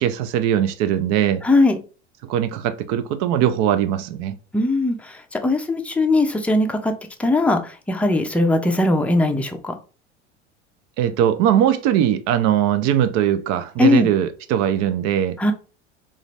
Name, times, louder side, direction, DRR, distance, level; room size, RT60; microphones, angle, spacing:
voice 1, 0.0-1.4 2.2-4.3 11.0-15.4, right 10 dB, 50° right, 0.6 m, -20 dB
voice 2, 1.4-1.8 4.5-6.9 7.2-9.7 13.8-14.1 15.4-15.5, left 2 dB, 5° left, 0.6 m, -19 dB
3.8 x 2.5 x 3.1 m
hypercardioid pair, 75°, 33 cm